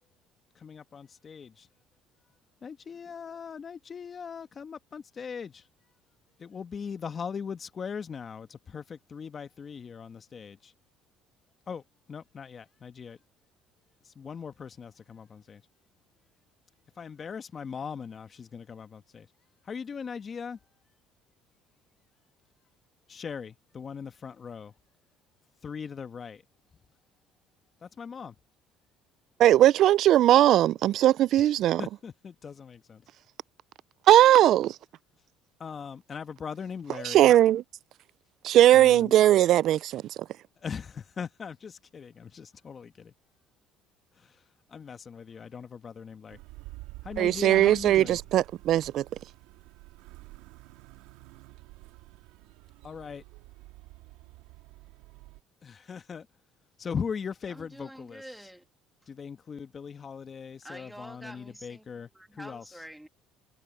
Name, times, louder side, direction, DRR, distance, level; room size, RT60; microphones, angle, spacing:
voice 1, 0.6-1.7 2.6-5.6 6.4-10.7 11.7-11.8 12.1-13.2 14.1-15.6 17.0-19.3 19.7-20.6 23.1-24.7 25.6-26.4 27.8-28.3 31.8-33.0 35.6-37.3 38.7-39.1 40.6-43.1 44.7-46.4 47.0-48.2 52.8-53.2 55.6-56.2 56.8-58.2 59.1-62.1 62.3-62.6, left 6 dB, 35° left, 1.6 m, -39 dB
voice 2, 29.4-31.8 34.1-34.8 36.9-37.6 38.4-40.0 47.2-49.0, right 13 dB, 60° right, 0.4 m, -19 dB
sound 1, 46.3-55.4, right 20 dB, 85° right, 2.2 m, -49 dB
voice 3, 57.5-58.7 60.6-63.1, right 1 dB, 5° right, 2.5 m, -47 dB
supercardioid pair, 85°, 0 cm